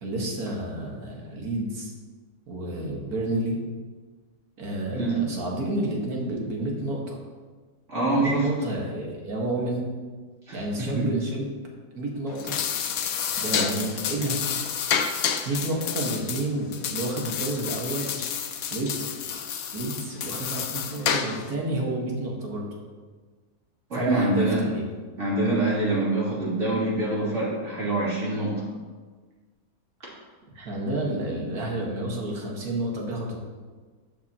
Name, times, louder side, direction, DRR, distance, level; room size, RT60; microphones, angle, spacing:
voice 1, 0.0-1.9 2.5-3.6 4.6-7.2 8.2-9.9 10.5-11.5 11.9-12.6 13.4-14.4 15.5-18.1 18.7-19.4 19.7-22.7 23.9-24.8 30.6-33.4, right 1 dB, 65° right, -1 dB, 2.1 m, -30 dB
voice 2, 4.9-5.3 7.9-8.5 10.5-11.1 23.9-24.6 25.2-28.7, right 2 dB, 45° right, -8 dB, 3.3 m, -25 dB
sound 1, 12.3-21.5, left 7 dB, 65° left, 1.1 m, -29 dB
11.5 x 7.8 x 2.9 m, 1.4 s
omnidirectional pair, 1.7 m